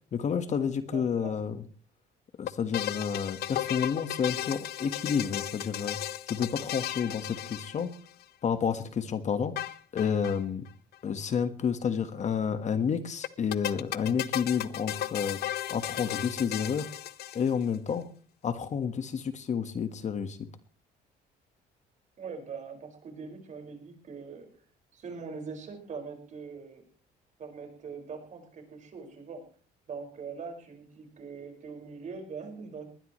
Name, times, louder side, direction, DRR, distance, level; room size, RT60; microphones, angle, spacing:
voice 1, 0.1-1.6 2.4-6.0 6.3-7.9 8.4-10.6 11.0-15.4 15.7-16.9 17.3-18.0 18.4-20.4, left 7 dB, 45° left, 9 dB, 1.6 m, -30 dB
voice 2, 0.8-1.4 22.2-24.5 24.9-26.8 27.4-29.4 29.9-32.9, right 5 dB, 45° right, 3 dB, 5.6 m, -42 dB
sound 1, 2.5-8.2 9.6-10.4 10.7-10.8 10.9-11.0 13.2-17.7, left 13 dB, 65° left, 0.8 m, -35 dB
20.5 x 20.0 x 3.2 m, 0.42 s
cardioid pair, 110°, 17 cm